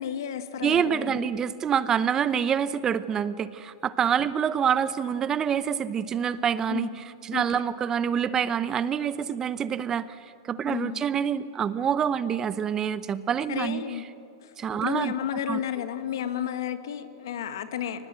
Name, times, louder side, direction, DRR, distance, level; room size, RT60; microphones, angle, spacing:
voice 1, 0.0-1.3 6.7-7.0 7.3-7.4 10.7-11.0 13.5-14.0 14.8-18.1, left 9 dB, 70° left, 10 dB, 1.7 m, -32 dB
voice 2, 0.6-10.2 10.5-13.8 14.6-15.1 15.5-15.6, right 8 dB, 25° right, 15 dB, 0.8 m, -26 dB
23.0 x 19.0 x 8.9 m, 2.5 s
hypercardioid pair, 120°, 2 cm